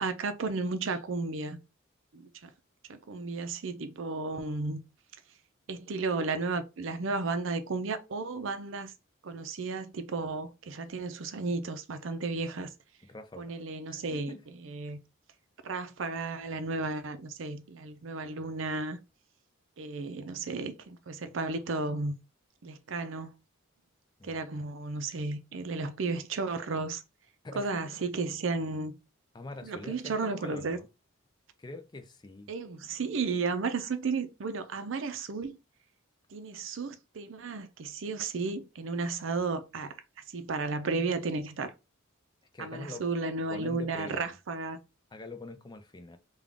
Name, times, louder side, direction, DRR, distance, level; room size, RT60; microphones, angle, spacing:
voice 1, 0.0-1.6 2.1-2.5 2.9-4.8 5.7-8.9 9.2-12.7 13.4-14.3 14.6-15.0 15.6-19.0 19.8-22.1 22.6-23.3 24.2-27.0 27.6-28.9 29.6-30.8 32.5-35.6 36.3-39.9 40.3-41.7 42.6-44.8, right 3 dB, 65° right, 0.5 m, -33 dB
voice 2, 13.1-13.5 13.9-14.4 24.2-24.4 27.4-27.7 29.3-30.9 31.6-32.5 42.5-43.0 43.5-44.4 45.1-46.2, left 2 dB, 20° left, 0.4 m, -44 dB
3.6 x 2.3 x 3.5 m
head